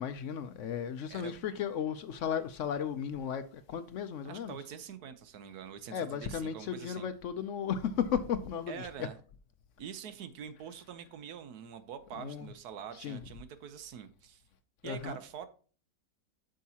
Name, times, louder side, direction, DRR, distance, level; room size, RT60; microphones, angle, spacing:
voice 1, 0.0-4.6 5.9-8.9 12.1-12.5 13.0-13.2 14.8-15.2, left 8 dB, 75° left, 0.7 m, -35 dB
voice 2, 4.2-7.1 8.7-9.2 9.8-14.4 14.8-15.5, right 8 dB, 70° right, 1.1 m, -45 dB
8.2 x 6.5 x 2.8 m
omnidirectional pair, 1.9 m